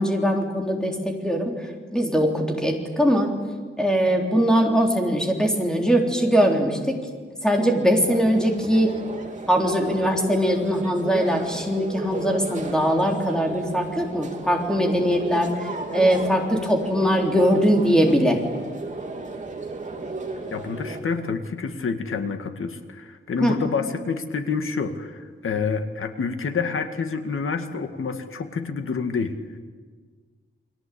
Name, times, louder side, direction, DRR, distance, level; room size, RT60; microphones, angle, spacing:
voice 1, 0.0-1.5 1.9-3.3 3.8-7.0 7.4-9.0 9.5-15.5 15.9-18.4 23.4-23.5, equal, 5° left, 1 dB, 3.7 m, -21 dB
sound 1, 8.0-21.0, right 3 dB, 35° right, 2.9 m, -34 dB
voice 2, 20.5-29.4, left 5 dB, 75° left, 7 dB, 2.1 m, -28 dB
29.5 x 22.5 x 8.7 m, 1.5 s
wide cardioid pair, 175°, 21 cm